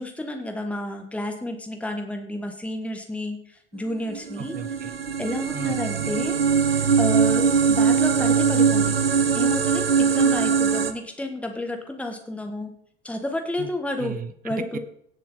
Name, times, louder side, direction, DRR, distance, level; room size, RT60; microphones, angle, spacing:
voice 1, 0.0-3.4 3.7-4.5 5.2-9.0 9.3-12.7 13.0-14.1 14.4-14.8, left 1 dB, 5° left, 4 dB, 1.7 m, -31 dB
sound 1, 4.1-10.9, right 6 dB, 80° right, 0.9 m, -21 dB
voice 2, 4.4-4.9 5.5-6.1 13.6-13.7 14.0-14.8, right 9 dB, 30° right, 13 dB, 0.9 m, -36 dB
17.0 x 7.4 x 3.9 m, 0.66 s
figure-of-eight pair, 75°, 29 cm